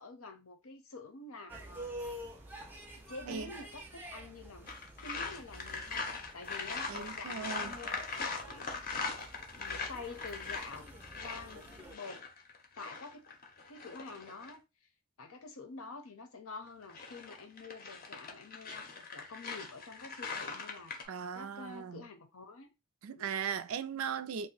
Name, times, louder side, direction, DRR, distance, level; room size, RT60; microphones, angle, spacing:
voice 1, 0.0-1.9 3.1-4.7 5.0-6.0 6.3-10.9 11.1-12.3 12.7-13.3 13.7-14.6 15.2-22.7 23.1-23.3, left 3 dB, 90° left, 0.7 m, -48 dB
sound 1, 1.5-11.9, right 1 dB, 10° right, 0.4 m, -49 dB
sound 2, 4.7-14.5 16.7-21.1, left 4 dB, 40° left, 0.6 m, -41 dB
voice 2, 6.9-7.7 21.1-22.1 23.0-24.5, right 7 dB, 85° right, 0.4 m, -38 dB
2.7 x 2.0 x 3.9 m
head